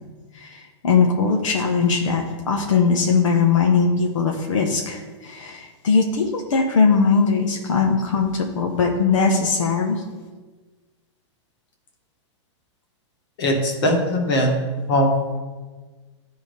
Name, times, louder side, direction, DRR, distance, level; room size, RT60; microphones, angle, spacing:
voice 1, 0.4-10.0, left 5 dB, 85° left, 2 dB, 1.1 m, -20 dB
voice 2, 13.4-14.6 14.9-15.1, equal, 50° left, 1 dB, 1.9 m, -20 dB
11.0 x 3.8 x 4.9 m, 1.3 s
supercardioid pair, 170°, 16 cm